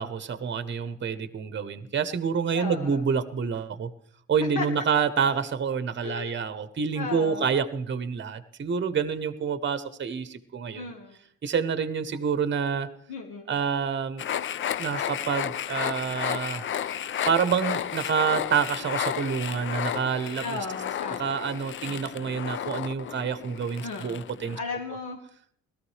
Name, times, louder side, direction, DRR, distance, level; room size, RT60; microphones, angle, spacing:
voice 1, 0.0-3.9 4.3-10.9 11.4-12.9 13.5-14.2 14.8-16.7 17.3-20.6 21.2-24.6, right 6 dB, 40° right, 12 dB, 0.9 m, -28 dB
voice 2, 2.5-3.0 4.5-4.7 6.0-6.4 6.9-7.6 10.7-11.2 13.1-13.5 20.4-21.2 21.9-22.1 23.8-24.2 24.5-25.2, left 4 dB, 85° left, 0 dB, 1.6 m, -35 dB
sound 1, 14.2-24.6, left 9 dB, 40° left, 0.4 m, -32 dB
17.0 x 13.5 x 3.2 m, 0.64 s
cardioid pair, 90°, 30 cm